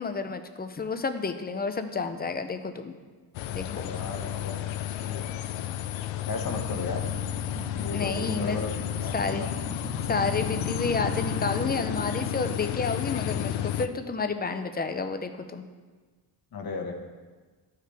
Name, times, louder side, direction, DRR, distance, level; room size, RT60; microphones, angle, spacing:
voice 1, 0.0-3.0 3.5-3.9 7.9-8.6 9.1-9.5 10.1-15.7, left 4 dB, 20° left, 8 dB, 0.5 m, -30 dB
sound 1, 3.3-13.9, left 11 dB, 75° left, 0.6 m, -32 dB
voice 2, 3.7-5.3 6.3-7.1 7.7-9.1 9.4-9.5 16.5-16.9, left 4 dB, 50° left, 2 dB, 1.3 m, -35 dB
sound 2, 6.4-11.5, right 2 dB, 75° right, 1.5 m, -41 dB
13.0 x 4.8 x 3.4 m, 1.4 s
cardioid pair, 105°, 47 cm